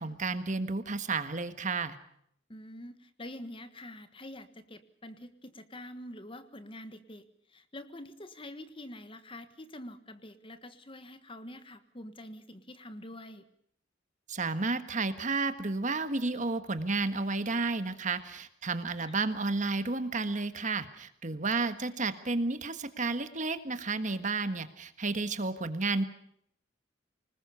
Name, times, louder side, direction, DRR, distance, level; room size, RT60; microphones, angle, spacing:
voice 1, 0.0-2.0 14.3-26.0, right 3 dB, 40° right, 11 dB, 1.5 m, -32 dB
voice 2, 2.5-7.2 7.5-13.5 19.0-19.1, left 1 dB, 30° left, 11 dB, 1.5 m, -46 dB
25.5 x 20.0 x 6.9 m, 0.70 s
head